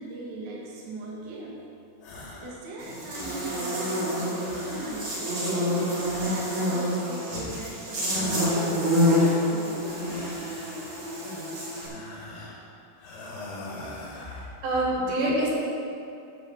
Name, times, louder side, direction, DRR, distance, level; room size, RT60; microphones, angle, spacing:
voice 1, 0.0-1.5 2.4-5.7 6.2-10.2, right 2 dB, 90° right, -6 dB, 0.9 m, -40 dB
sound 1, 2.0-2.6 2.9-3.8 4.4-5.4 5.9-6.9 7.3-7.8 8.1-8.7 9.1-10.9 11.7-12.7 13.0-14.5, left 1 dB, 65° left, 3.0 m, -43 dB
Buzz, 2.8-11.9, left 1 dB, 40° right, 2.7 m, -27 dB
voice 2, 14.3-15.5, right 1 dB, 65° right, -5 dB, 3.3 m, -26 dB
10.0 x 4.5 x 7.1 m, 2.6 s
omnidirectional pair, 5.0 m